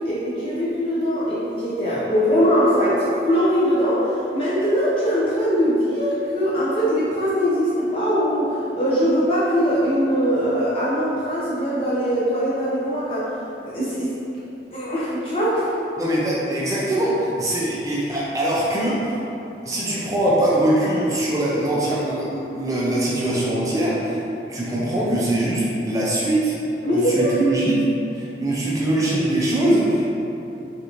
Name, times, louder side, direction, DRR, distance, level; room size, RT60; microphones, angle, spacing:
voice 1, 0.0-14.1 14.7-15.7 26.8-27.3, equal, 30° left, -10 dB, 0.6 m, -21 dB
voice 2, 16.0-19.2 19.7-24.2 24.5-26.6 26.9-27.8 28.2-30.2, right 1 dB, 20° right, -6 dB, 0.4 m, -22 dB
3.7 x 2.5 x 2.9 m, 2.8 s
head